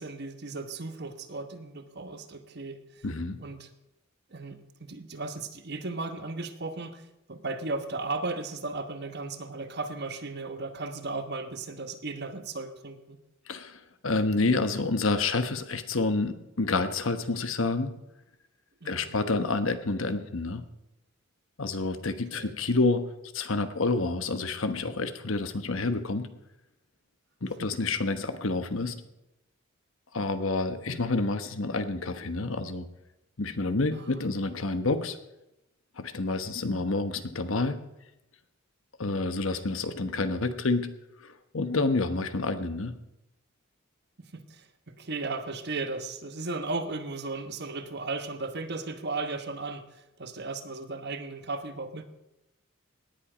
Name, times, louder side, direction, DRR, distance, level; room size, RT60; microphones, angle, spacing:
voice 1, 0.0-3.0 3.4-3.7 4.3-13.2 18.8-19.2 22.3-22.6 27.6-27.7 33.9-34.1 44.2-52.0, right 3 dB, 55° right, 8 dB, 1.2 m, -36 dB
voice 2, 3.0-3.4 13.5-17.9 18.8-20.6 21.6-23.0 23.3-26.3 27.4-28.9 30.1-32.9 33.4-35.2 36.0-37.8 39.0-40.9 41.2-42.9, left 3 dB, 75° left, 10 dB, 1.2 m, -28 dB
18.0 x 10.5 x 5.1 m, 0.91 s
head